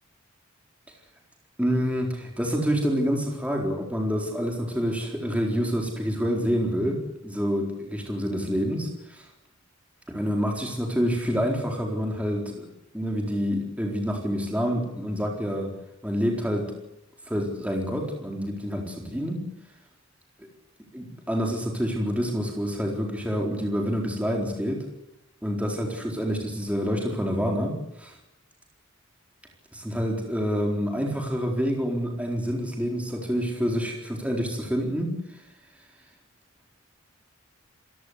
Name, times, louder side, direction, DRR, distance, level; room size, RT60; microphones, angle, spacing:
voice 1, 1.6-9.3 10.1-12.7 12.9-15.7 16.0-16.7 17.3-19.4 20.9-24.8 25.4-28.1 29.7-35.4, equal, 5° right, 1 dB, 4.2 m, -27 dB
27.5 x 17.0 x 8.2 m, 0.84 s
head